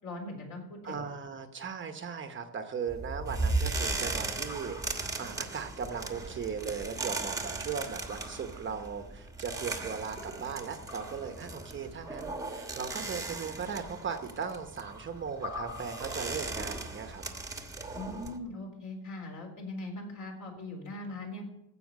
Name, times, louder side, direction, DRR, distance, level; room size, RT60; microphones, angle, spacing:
voice 1, 0.0-1.1 17.9-21.4, left 2 dB, 50° left, 2 dB, 4.0 m, -40 dB
voice 2, 0.8-17.2, right 6 dB, 30° right, 7 dB, 1.0 m, -38 dB
sound 1, 2.9-18.4, right 2 dB, 10° right, 1.2 m, -37 dB
15.5 x 5.8 x 8.4 m, 0.83 s
cardioid pair, 170°, 37 cm